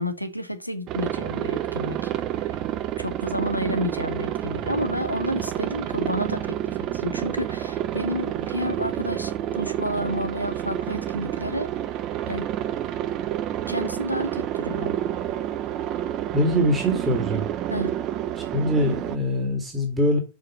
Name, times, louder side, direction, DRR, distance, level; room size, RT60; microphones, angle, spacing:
voice 1, 0.0-2.1 2.4-2.6 3.0-11.7 12.3-12.5 13.7-15.0 17.7-17.9, equal, 90° left, 1.1 m, -30 dB
Aircraft, 0.9-19.2, right 12 dB, 35° right, 0.7 m, -29 dB
voice 2, 16.3-17.5 18.5-20.2, equal, 15° right, 2.1 m, -23 dB
6.4 x 5.0 x 7.0 m
figure-of-eight pair, 90°, 0 cm